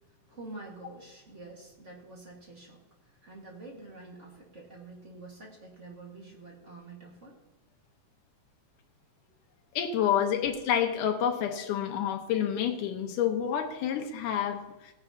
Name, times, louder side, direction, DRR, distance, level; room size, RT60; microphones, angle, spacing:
voice 1, 0.0-7.4, right 2 dB, 30° right, -1 dB, 1.4 m, -47 dB
voice 2, 9.8-14.9, left 9 dB, 85° left, 4 dB, 2.6 m, -28 dB
17.5 x 9.6 x 2.8 m, 1.1 s
omnidirectional pair, 3.6 m